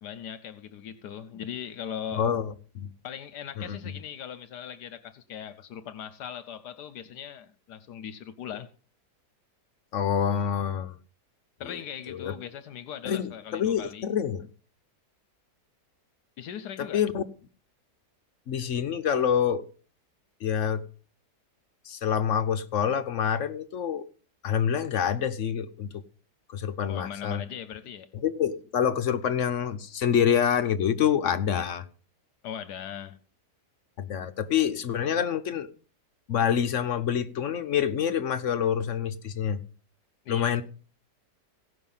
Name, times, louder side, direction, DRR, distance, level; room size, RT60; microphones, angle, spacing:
voice 1, 0.0-2.3 3.0-8.7 11.6-14.1 16.4-17.0 26.9-28.1 32.4-33.2 40.2-40.6, left 9 dB, 75° left, 1.2 m, -39 dB
voice 2, 2.1-2.9 3.6-3.9 9.9-11.0 11.6-11.8 12.1-12.3 13.0-14.5 16.8-17.2 18.5-19.6 20.4-20.8 21.9-24.0 24.4-25.9 26.5-27.4 28.2-31.8 34.0-35.7 36.3-39.6 40.3-40.6, left 8 dB, 60° left, 0.9 m, -27 dB
16.5 x 5.8 x 5.5 m
omnidirectional pair, 1.8 m